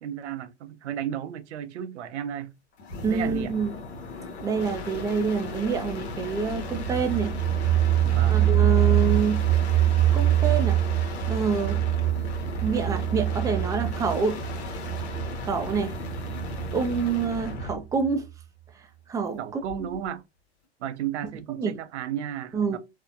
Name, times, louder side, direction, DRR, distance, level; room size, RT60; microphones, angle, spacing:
voice 1, 0.0-2.5 3.1-3.5 8.0-8.4 19.4-20.2 20.8-22.8, right 9 dB, 80° right, 0.6 m, -34 dB
sound 1, 2.8-17.8 19.6-20.1, left 2 dB, 70° left, 0.9 m, -36 dB
voice 2, 3.0-3.7 4.4-7.3 8.3-9.4 10.1-10.8 11.3-11.8 12.6-14.4 15.4-15.9 16.7-18.3 19.1-19.6 19.9-20.0 21.5-21.8 22.5-22.8, right 5 dB, 10° right, 0.3 m, -27 dB
sound 2, 6.6-17.3 17.6-17.7 18.0-18.1, right 13 dB, 25° right, 0.8 m, -25 dB
2.7 x 2.1 x 2.5 m
hypercardioid pair, 105°, 34 cm